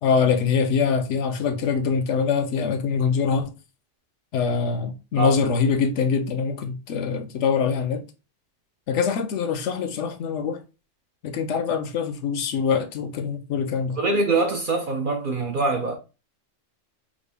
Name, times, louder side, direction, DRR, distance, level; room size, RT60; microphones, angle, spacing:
voice 1, 0.0-3.5 4.3-8.0 8.9-10.6 11.2-14.0, left 5 dB, 75° left, 0.9 m, -24 dB
voice 2, 14.0-16.0, right 3 dB, 55° right, 0.6 m, -23 dB
4.9 x 2.1 x 3.4 m
omnidirectional pair, 1.3 m